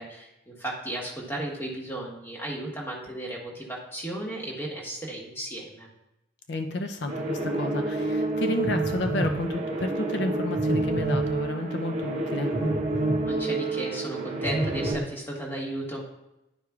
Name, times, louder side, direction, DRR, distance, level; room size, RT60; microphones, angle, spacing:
voice 1, 0.0-5.9 13.2-16.0, right 1 dB, 10° left, -3 dB, 1.2 m, -35 dB
voice 2, 6.5-12.5, left 2 dB, 65° left, 5 dB, 0.5 m, -31 dB
sound 1, 7.1-15.0, right 2 dB, 35° right, 0.7 m, -29 dB
Telephone, 8.6-9.3 10.5-11.3 12.5-13.2 14.4-14.9, right 1 dB, 85° left, 1.5 m, -29 dB
10.5 x 4.8 x 2.3 m, 0.91 s
head